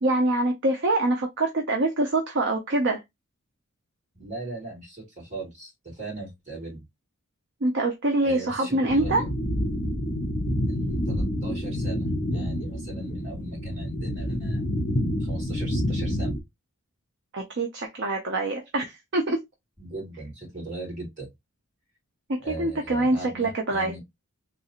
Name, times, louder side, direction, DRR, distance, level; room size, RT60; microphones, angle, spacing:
voice 1, 0.0-3.0 7.6-9.2 17.3-19.4 22.3-23.9, right 2 dB, 55° right, 0.6 m, -25 dB
voice 2, 4.1-6.8 8.2-9.3 10.6-14.6 15.2-16.4 19.8-21.3 22.4-24.0, right 2 dB, 30° right, 2.5 m, -39 dB
sound 1, 8.9-16.4, equal, 40° left, 0.7 m, -28 dB
3.8 x 2.4 x 2.9 m
head